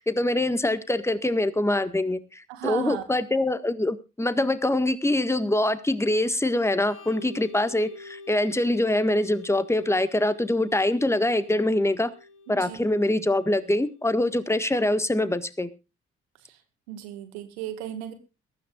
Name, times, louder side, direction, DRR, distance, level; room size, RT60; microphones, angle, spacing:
voice 1, 0.0-12.1 12.5-15.7, left 1 dB, 10° left, 12 dB, 1.6 m, -24 dB
voice 2, 2.5-3.0 12.5-12.9 16.4-16.6 16.9-18.1, right 10 dB, 80° right, 9 dB, 1.9 m, -35 dB
Organ, 6.7-14.2, left 3 dB, 80° left, 5.3 m, -47 dB
22.5 x 13.0 x 2.4 m, 0.29 s
hypercardioid pair, 40°, 32 cm